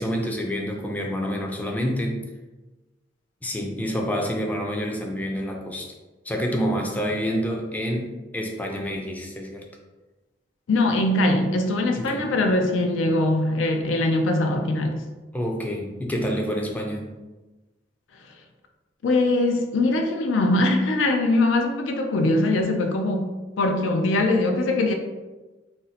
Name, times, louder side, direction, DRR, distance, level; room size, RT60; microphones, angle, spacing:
voice 1, 0.0-2.2 3.4-5.9 6.3-9.6 12.0-12.3 15.3-17.2, equal, 10° left, 1 dB, 0.4 m, -28 dB
voice 2, 10.7-15.0 19.0-24.9, left 2 dB, 90° left, 4 dB, 0.4 m, -22 dB
2.6 x 2.0 x 3.9 m, 1.2 s
head